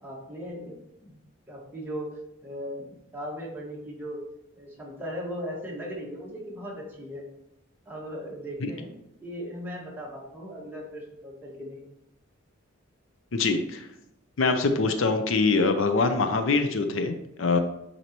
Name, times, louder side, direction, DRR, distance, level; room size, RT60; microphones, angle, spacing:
voice 1, 0.0-1.2 1.5-2.1 2.4-4.2 4.6-7.2 7.9-8.9 9.2-11.9, equal, 10° right, -4 dB, 1.7 m, -38 dB
voice 2, 13.3-13.9 14.4-17.6, left 3 dB, 70° left, 7 dB, 0.6 m, -24 dB
9.0 x 4.2 x 3.0 m, 0.86 s
head